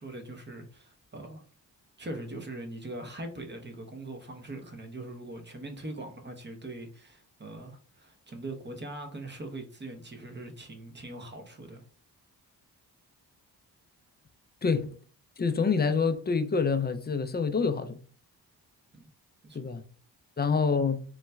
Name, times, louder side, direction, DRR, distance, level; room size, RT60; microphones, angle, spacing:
voice 1, 0.0-1.4 2.0-11.8 18.9-19.1 19.4-19.6, right 2 dB, 25° right, 0.8 m, -41 dB
voice 2, 14.6-15.0 15.4-18.0 19.5-19.8 20.4-21.0, left 5 dB, 25° left, 0.4 m, -27 dB
3.9 x 2.1 x 2.3 m
supercardioid pair, 50°, 42 cm